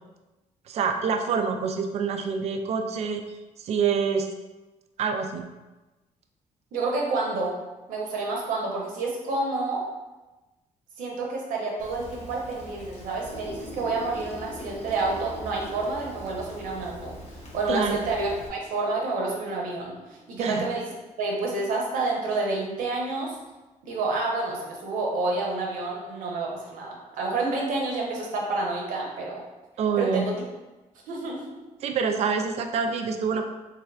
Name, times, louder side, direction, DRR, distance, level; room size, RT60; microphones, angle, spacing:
voice 1, 0.7-3.2 3.6-4.3 5.0-5.5 17.7-18.0 20.4-20.6 29.8-30.3 31.8-33.4, right 6 dB, 50° right, 6 dB, 0.4 m, -26 dB
voice 2, 6.7-7.5 7.9-9.8 11.0-20.9 21.2-23.4 23.8-29.4 30.0-30.3 31.1-31.4, right 3 dB, 85° right, -2 dB, 0.8 m, -29 dB
Rain, 11.8-18.5, equal, 55° left, 0.9 m, -44 dB
sound 1, 13.1-20.7, left 1 dB, 15° left, 0.7 m, -46 dB
3.4 x 3.2 x 2.3 m, 1.1 s
cardioid pair, 110°, 14 cm